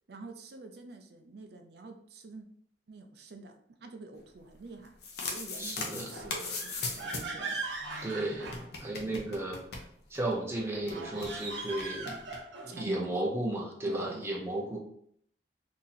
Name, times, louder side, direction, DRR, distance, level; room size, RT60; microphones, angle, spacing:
voice 1, 0.1-2.5 2.9-4.9 5.2-7.6 9.1-9.3 12.7-13.3 13.9-14.3, right 3 dB, 65° right, 5 dB, 0.5 m, -46 dB
sound 1, 4.8-7.4 7.7-7.8 8.0-8.1 8.4-10.3 10.6-10.7 10.9-11.3 11.8-12.4, left 3 dB, 60° left, 0.7 m, -38 dB
voice 2, 5.6-6.1 8.0-9.6 10.1-12.2 12.6-14.8, right 1 dB, 15° right, -2 dB, 0.6 m, -34 dB
sound 2, 6.1-9.2 10.8-12.8, right 3 dB, 85° right, 0.9 m, -40 dB
2.8 x 2.7 x 3.9 m, 0.65 s
head